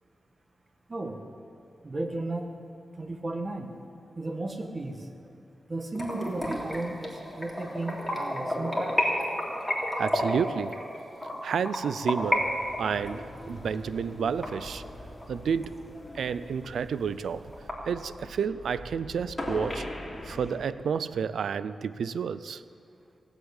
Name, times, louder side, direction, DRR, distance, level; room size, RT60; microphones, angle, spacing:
voice 1, 0.9-1.2 1.8-2.5 3.0-3.8 4.1-5.1 5.7-8.9, right 2 dB, 35° right, 5 dB, 1.6 m, -34 dB
sound 1, 5.9-12.4 12.7-15.2 15.6-15.7 16.2-16.3 16.6-16.7 17.0-17.7, left 1 dB, 5° left, 3.5 m, -31 dB
voice 2, 10.0-10.8 11.4-12.5 12.8-14.8 15.3-15.9 16.1-17.5 17.9-19.9 20.2-22.6, right 6 dB, 85° right, 15 dB, 0.4 m, -30 dB
sound 2, 12.2-20.6, left 1 dB, 25° left, 3.3 m, -41 dB
17.5 x 8.1 x 8.8 m, 2.5 s
cardioid pair, 70°, 0 cm